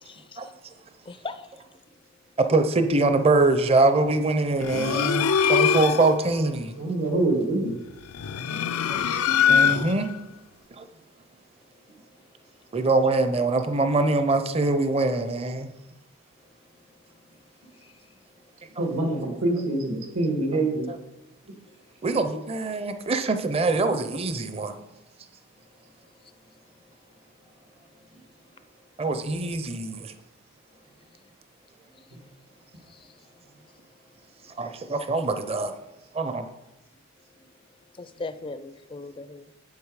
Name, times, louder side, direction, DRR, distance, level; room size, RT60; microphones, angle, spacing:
voice 1, 0.0-0.4 1.1-1.5 32.9-33.0 38.0-39.5, left 3 dB, 25° left, 0.4 m, -38 dB
voice 2, 2.4-6.7 8.9-9.2 9.5-10.1 10.8-10.9 12.7-15.7 18.8-18.9 20.9-21.0 22.0-24.8 29.0-30.1 34.6-35.7 36.1-36.4, right 3 dB, 25° right, 0.6 m, -23 dB
sound 1, 4.6-6.2 8.1-10.1, left 7 dB, 90° left, 0.5 m, -22 dB
voice 3, 6.8-7.8 18.8-20.9 32.1-32.2, right 2 dB, 80° right, 1.9 m, -25 dB
8.3 x 7.9 x 4.8 m
head